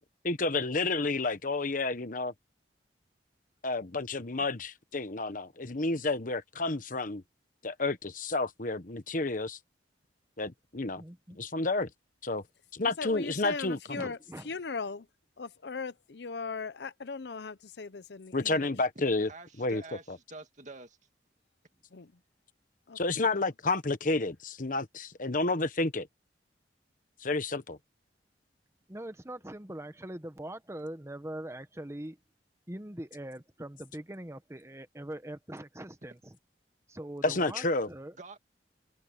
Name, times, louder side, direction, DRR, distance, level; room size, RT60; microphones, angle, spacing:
voice 1, 0.2-2.3 3.6-7.2 7.6-9.6 10.4-11.0 11.4-11.9 12.2-12.4 12.7-14.1 18.3-19.3 19.6-19.8 20.1-20.2 22.9-26.1 27.2-27.8 37.2-37.9, left 3 dB, 50° left, 1.2 m, -30 dB
voice 2, 11.0-11.4 13.9-14.5 28.9-32.2 32.7-36.4 36.9-38.2, right 1 dB, 15° right, 0.9 m, -42 dB
voice 3, 12.8-14.2 14.4-15.1 15.4-18.7 21.9-22.1 22.9-23.5, left 4 dB, 65° left, 0.7 m, -39 dB
voice 4, 19.0-21.0 38.2-38.4, right 3 dB, 40° right, 2.3 m, -47 dB
head